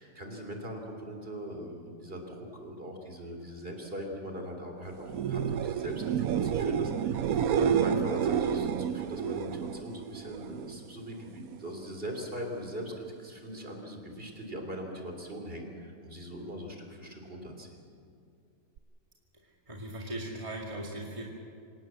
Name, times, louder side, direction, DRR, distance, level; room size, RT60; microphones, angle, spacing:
voice 1, 0.0-17.8, equal, 40° right, 3 dB, 3.6 m, -40 dB
sound 1, 5.0-10.8 11.1-11.7 18.8-18.9, right 8 dB, 80° right, 1.2 m, -30 dB
voice 2, 19.4-21.2, right 1 dB, 20° right, -1 dB, 2.3 m, -39 dB
26.5 x 18.0 x 7.6 m, 2.5 s
omnidirectional pair, 1.5 m